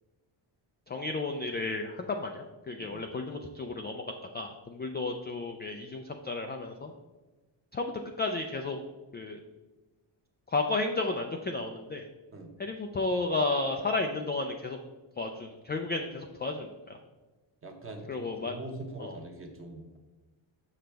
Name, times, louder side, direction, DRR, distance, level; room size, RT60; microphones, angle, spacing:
voice 1, 0.9-4.0 4.3-6.9 7.7-7.9 8.2-8.8 9.1-9.4 10.5-12.1 12.6-14.8 15.2-17.0 18.1-18.5 19.0-19.2, left 3 dB, 25° left, 4 dB, 0.3 m, -32 dB
voice 2, 17.6-20.0, right 2 dB, 25° right, 3 dB, 1.0 m, -43 dB
6.3 x 6.0 x 3.4 m, 1.2 s
cardioid pair, 125°, 49 cm